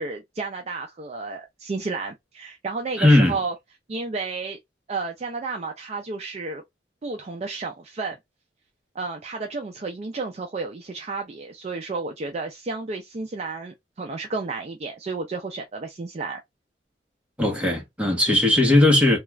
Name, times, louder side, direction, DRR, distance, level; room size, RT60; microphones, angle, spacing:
voice 1, 0.0-3.5 3.9-4.6 4.9-6.6 7.0-8.2 9.0-16.4, right 3 dB, 35° right, 0.4 m, -32 dB
voice 2, 3.0-3.4 17.4-19.2, left 1 dB, 5° right, 0.9 m, -18 dB
2.3 x 2.3 x 3.1 m
head